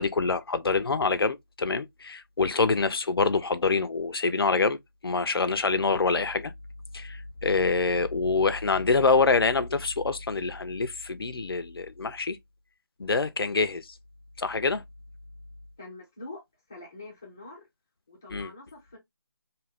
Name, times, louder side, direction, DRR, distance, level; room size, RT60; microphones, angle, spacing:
voice 1, 0.0-4.8 5.0-6.5 6.9-12.4 13.0-14.0 14.4-14.8 18.3-18.5, left 4 dB, 85° left, 0.4 m, -26 dB
voice 2, 15.8-16.4 16.7-17.7 18.1-19.0, left 2 dB, 10° left, 0.4 m, -44 dB
2.7 x 2.4 x 3.1 m
figure-of-eight pair, 165°, 12 cm